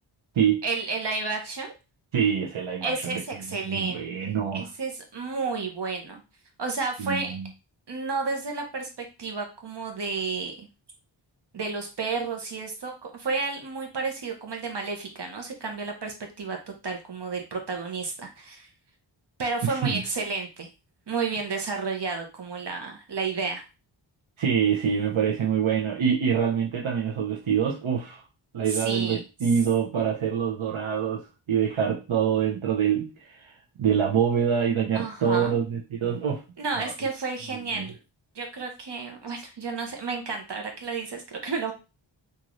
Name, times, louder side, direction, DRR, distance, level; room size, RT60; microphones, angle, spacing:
voice 1, 0.6-1.7 2.8-6.2 6.6-7.4 7.9-10.7 11.5-16.6 16.8-18.7 19.4-20.7 21.1-23.6 28.7-29.2 34.9-35.6 36.6-38.0 38.3-41.7, right 4 dB, 60° right, 3 dB, 1.1 m, -31 dB
voice 2, 2.1-3.2 3.6-4.7 7.0-7.5 19.6-20.0 24.4-28.2 28.5-33.5 33.8-36.4 36.8-36.9 37.7-37.9, right 7 dB, 85° right, -1 dB, 0.8 m, -25 dB
3.8 x 2.7 x 3.1 m, 0.29 s
wide cardioid pair, 65°, 47 cm